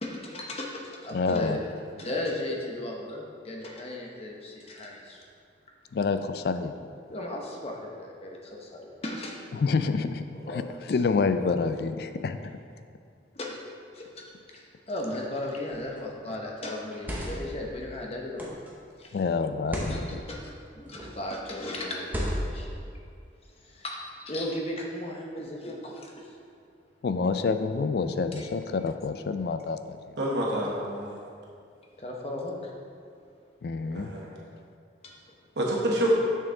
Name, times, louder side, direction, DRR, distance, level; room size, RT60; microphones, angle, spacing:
voice 1, 0.0-1.6 1.9-5.2 7.1-9.4 10.4-10.7 13.3-13.6 13.9-18.5 19.0-19.2 19.9-22.9 23.6-26.4 28.4-28.5 32.0-32.7 35.0-35.1, left 1 dB, 30° left, -1 dB, 0.8 m, -36 dB
voice 2, 1.1-1.6 5.9-6.7 9.5-12.4 16.3-16.4 19.1-20.2 27.0-30.0 33.6-34.1, left 4 dB, 55° left, 10 dB, 0.3 m, -28 dB
sound 1, 15.7-16.0 16.8-17.6 18.4-18.7 19.6-20.0 20.9-21.3 22.0-22.7, equal, 10° right, 0.8 m, -33 dB
voice 3, 30.2-31.2 33.9-34.3 35.6-36.1, right 1 dB, 65° right, -4 dB, 1.0 m, -28 dB
6.6 x 6.2 x 3.7 m, 2.3 s
head